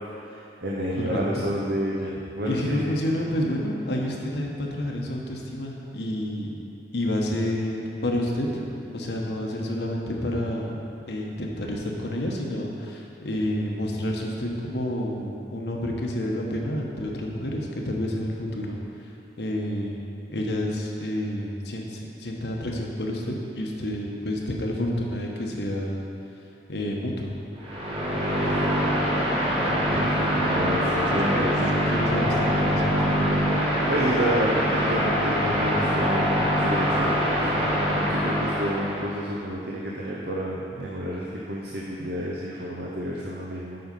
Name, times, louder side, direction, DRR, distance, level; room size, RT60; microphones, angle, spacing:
voice 1, 0.2-2.9 28.3-28.7 30.0-31.5 33.9-36.4 36.6-37.5 38.0-43.8, equal, 65° right, -4 dB, 0.8 m, -30 dB
voice 2, 1.0-1.5 2.4-6.5 6.9-8.6 8.9-10.7 11.1-18.8 19.4-26.1 26.7-27.3 30.9-31.6 31.9-32.9, left 1 dB, 80° left, -1 dB, 1.1 m, -29 dB
sound 1, 27.6-39.1, equal, 30° right, 1.4 m, -24 dB
7.8 x 5.6 x 5.4 m, 2.7 s
head